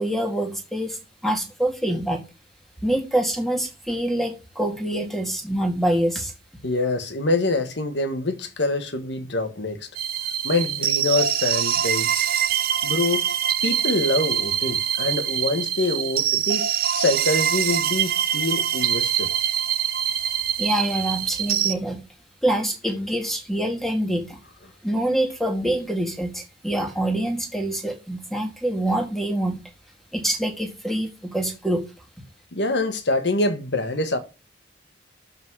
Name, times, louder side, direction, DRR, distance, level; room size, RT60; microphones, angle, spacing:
voice 1, 0.0-2.2 2.8-6.3 20.6-22.0 22.4-24.4 24.8-29.6 30.1-31.8, right 1 dB, ahead, 1.8 m, -25 dB
voice 2, 6.6-9.9 10.4-12.3 12.8-13.3 13.6-16.6 16.9-19.3 32.5-34.2, left 2 dB, 65° left, 1.4 m, -25 dB
sound 1, 10.0-21.7, right 10 dB, 50° right, 0.6 m, -24 dB
12.0 x 4.1 x 4.7 m
head